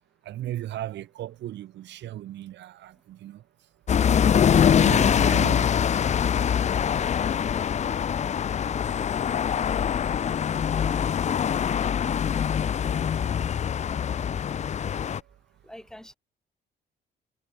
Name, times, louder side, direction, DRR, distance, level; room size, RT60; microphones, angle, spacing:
voice 1, 0.2-3.4 4.8-5.8 12.9-13.1 15.0-15.3, right 13 dB, 90° right, 2.2 m, -36 dB
sound 1, 3.9-15.2, left 8 dB, 40° left, 1.1 m, -23 dB
voice 2, 10.8-11.1 14.2-14.5 15.6-16.1, left 1 dB, 5° left, 5.2 m, -46 dB
cardioid pair, 165°, 18 cm